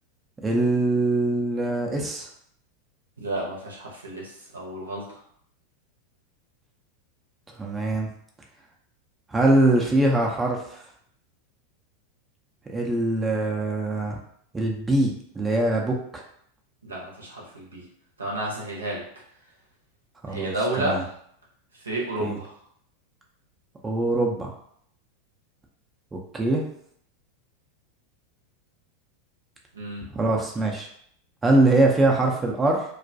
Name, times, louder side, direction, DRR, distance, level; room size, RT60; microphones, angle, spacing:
voice 1, 0.4-2.3 7.6-8.1 9.3-10.8 12.7-14.2 14.5-16.2 20.2-20.5 20.8-21.0 22.2-22.4 23.8-24.5 26.1-26.6 30.1-30.9 31.4-32.8, right 2 dB, 15° right, 0 dB, 0.5 m, -23 dB
voice 2, 3.2-5.2 16.8-17.9 18.2-19.0 20.3-21.1 21.7-22.6 29.7-30.0, right 1 dB, 85° right, -3 dB, 0.7 m, -31 dB
2.3 x 2.2 x 2.6 m, 0.66 s
figure-of-eight pair, 90°, 0 cm